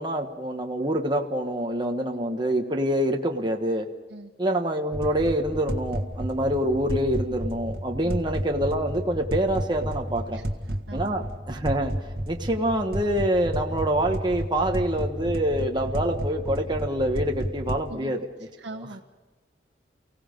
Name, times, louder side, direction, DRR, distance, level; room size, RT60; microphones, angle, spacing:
voice 1, 0.0-3.9 4.4-10.4 10.9-11.9 12.3-18.2 18.8-18.9, right 1 dB, 25° right, 2 dB, 1.3 m, -26 dB
sound 1, 4.9-17.9, right 1 dB, 60° right, 1.7 m, -32 dB
voice 2, 18.6-19.0, right 1 dB, 75° right, 0 dB, 1.2 m, -40 dB
29.5 x 17.0 x 5.3 m, 1.3 s
head